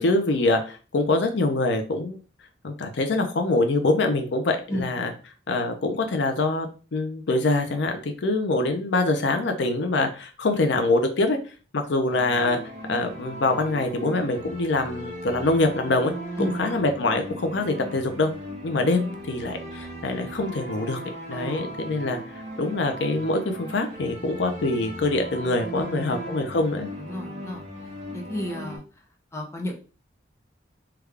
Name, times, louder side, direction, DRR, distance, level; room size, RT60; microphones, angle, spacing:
voice 1, 0.0-2.2 2.6-5.1 5.5-11.4 11.7-12.6 12.9-16.1 16.4-18.3 18.6-21.0 21.3-26.9, left 2 dB, 70° left, 5 dB, 0.5 m, -24 dB
sound 1, 12.1-28.8, right 1 dB, 40° right, 1.3 m, -37 dB
voice 2, 21.3-21.8 25.8-26.2 27.0-27.6 28.1-28.8 29.3-29.8, left 1 dB, 15° left, 1 dB, 0.6 m, -32 dB
3.5 x 2.3 x 3.2 m, 0.36 s
head